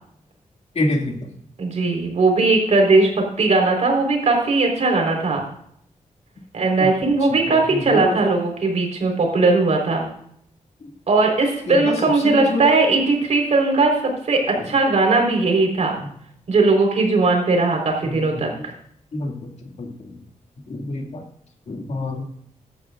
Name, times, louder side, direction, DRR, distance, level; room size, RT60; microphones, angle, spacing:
voice 1, 0.8-1.3 6.8-6.9 7.5-8.2 11.7-12.7 14.6-14.7 16.0-16.1 18.0-18.5 19.1-19.5 19.8-20.2 20.7-21.2 21.7-22.2, left 2 dB, 55° left, 2 dB, 2.2 m, -27 dB
voice 2, 1.6-5.4 6.5-10.1 11.1-15.9 16.5-18.7, right 3 dB, 55° right, 1 dB, 4.2 m, -19 dB
16.0 x 12.0 x 2.5 m, 0.67 s
wide cardioid pair, 160°, 13 cm